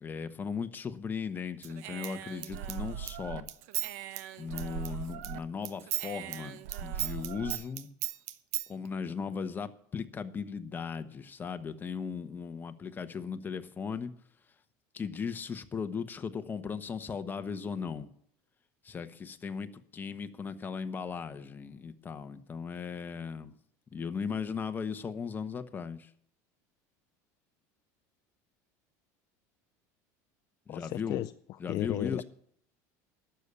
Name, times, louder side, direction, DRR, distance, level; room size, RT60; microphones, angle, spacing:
voice 1, 0.0-3.5 4.4-7.9 8.7-14.1 14.9-18.1 18.8-23.5 23.9-26.1 30.7-31.2 31.6-32.2, left 6 dB, 20° left, 1.0 m, -37 dB
Human voice / Scissors, 1.6-5.4 5.6-8.7, right 12 dB, 80° right, 0.9 m, -37 dB
voice 2, 30.7-31.3 31.7-32.2, left 16 dB, 50° left, 0.4 m, -33 dB
12.0 x 6.9 x 9.8 m
supercardioid pair, 120°, 9 cm